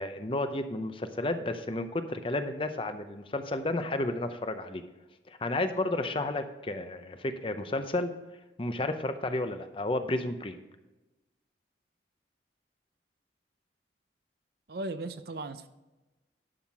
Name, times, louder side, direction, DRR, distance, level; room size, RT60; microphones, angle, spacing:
voice 1, 0.0-4.8 5.3-8.1 8.6-10.5, left 2 dB, 30° left, 0.7 m, -32 dB
voice 2, 14.7-15.7, right 2 dB, 60° right, 0.6 m, -37 dB
11.5 x 5.7 x 4.7 m
head